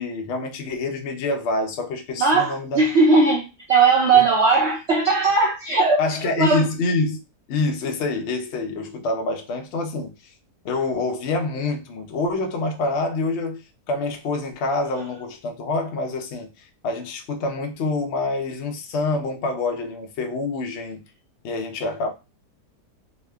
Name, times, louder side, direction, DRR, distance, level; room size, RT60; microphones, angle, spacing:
voice 1, 0.0-2.9 4.1-4.3 6.0-7.2 7.5-10.1 10.6-21.0 21.4-22.1, left 3 dB, 85° left, 0.6 m, -26 dB
voice 2, 2.2-6.0 6.4-6.7, right 4 dB, 90° right, 0.5 m, -18 dB
3.0 x 2.1 x 2.2 m
omnidirectional pair, 1.8 m